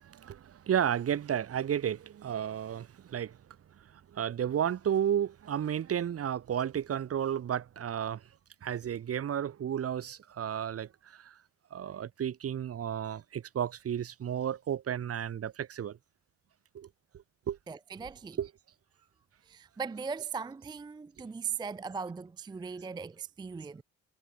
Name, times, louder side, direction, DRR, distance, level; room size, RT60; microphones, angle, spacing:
voice 1, 0.0-3.4 3.8-8.3 8.6-11.4 11.7-16.0 16.7-16.9 17.5-17.6 18.4-18.5, right 9 dB, 50° right, 1.2 m, -33 dB
voice 2, 17.7-18.4 19.5-23.8, right 6 dB, 15° right, 0.4 m, -39 dB
cardioid pair, 90°, 30 cm